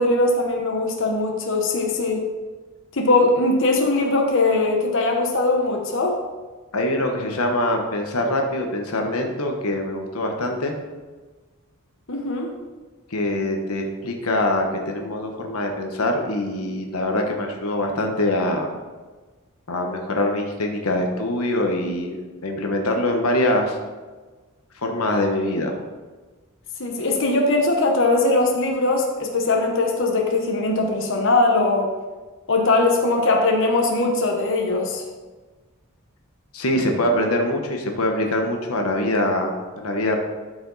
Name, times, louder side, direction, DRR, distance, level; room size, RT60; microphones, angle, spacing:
voice 1, 0.0-2.3 2.9-6.2 12.1-12.5 26.8-31.9 32.5-35.0, left 2 dB, 60° left, 1 dB, 1.1 m, -20 dB
voice 2, 6.7-10.7 13.1-18.7 19.7-23.8 24.8-25.8 36.5-40.2, left 1 dB, 85° left, 2 dB, 1.1 m, -24 dB
12.5 x 5.1 x 4.0 m, 1.3 s
head